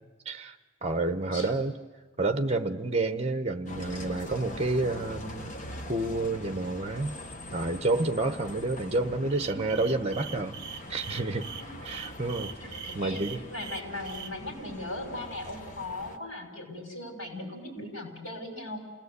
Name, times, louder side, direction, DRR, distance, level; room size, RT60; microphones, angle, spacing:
voice 1, 0.2-0.6 0.8-1.8 2.2-5.5 5.8-7.1 7.5-10.6 10.9-11.5 11.8-12.5 12.9-13.4, right 2 dB, 30° right, 8 dB, 1.0 m, -29 dB
Bus, 3.7-16.2, left 1 dB, 40° left, 1.3 m, -43 dB
sound 1, 9.3-14.3, right 8 dB, 55° right, 0.9 m, -42 dB
voice 2, 11.6-12.0 12.6-13.2 13.5-18.8, left 2 dB, 80° left, 2 dB, 6.7 m, -38 dB
28.5 x 18.0 x 8.3 m, 1.4 s
head